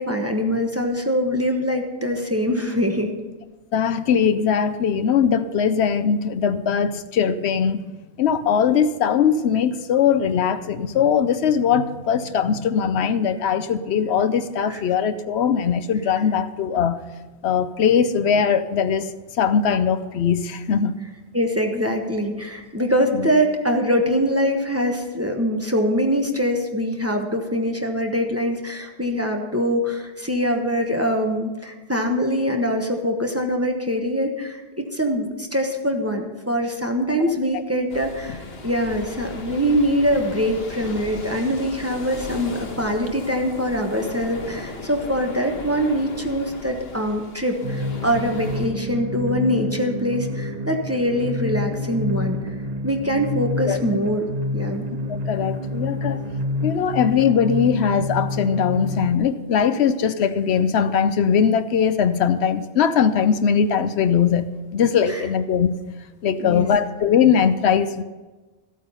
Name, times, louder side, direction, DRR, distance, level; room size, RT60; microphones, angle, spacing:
voice 1, 0.0-3.1 14.7-14.8 21.3-52.4 52.8-54.2 54.5-54.8 65.1-65.2 66.4-66.7, equal, 15° right, 3 dB, 1.1 m, -23 dB
voice 2, 3.7-7.8 8.2-17.0 17.4-19.1 19.4-21.0 23.1-23.3 53.6-53.8 55.3-56.2 56.6-65.8 66.2-68.0, left 7 dB, 80° left, 12 dB, 0.9 m, -20 dB
sound 1, 37.9-48.7, left 3 dB, 65° left, 1.5 m, -37 dB
sound 2, 47.6-59.1, left 1 dB, 45° right, 0.8 m, -28 dB
14.0 x 8.6 x 5.5 m, 1.2 s
omnidirectional pair, 1.1 m